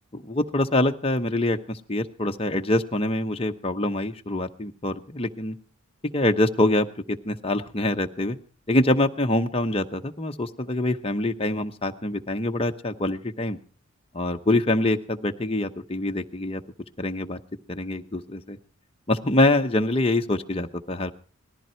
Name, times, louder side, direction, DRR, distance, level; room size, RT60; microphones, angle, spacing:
voice 1, 0.1-5.6 6.1-8.4 8.7-13.6 14.1-16.6 17.0-17.4 17.7-18.6 19.1-21.1, left 1 dB, 25° left, 5 dB, 0.9 m, -25 dB
19.0 x 14.0 x 4.5 m, 0.39 s
head